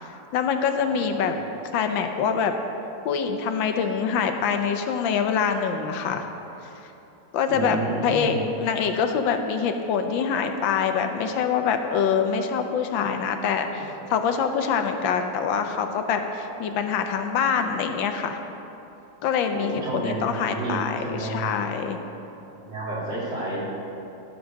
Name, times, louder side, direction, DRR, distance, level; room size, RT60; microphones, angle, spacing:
voice 1, 0.0-1.3 1.7-2.5 3.0-6.3 7.3-7.8 8.0-8.3 8.6-13.8 14.1-18.4 19.2-22.0, left 6 dB, 90° left, 6 dB, 1.5 m, -25 dB
voice 2, 0.8-1.3 7.5-8.5 19.5-21.5 22.4-23.6, right 1 dB, 35° right, -8 dB, 2.9 m, -31 dB
14.0 x 4.8 x 6.3 m, 2.9 s
omnidirectional pair, 2.0 m